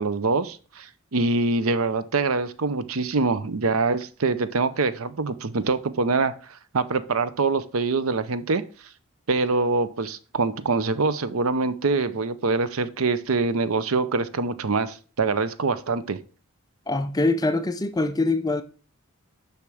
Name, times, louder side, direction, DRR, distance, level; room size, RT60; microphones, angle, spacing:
voice 1, 0.0-8.6 9.3-16.2, right 3 dB, 80° right, 0.7 m, -24 dB
voice 2, 16.9-18.6, left 2 dB, 20° left, 0.5 m, -23 dB
7.0 x 5.8 x 4.9 m
head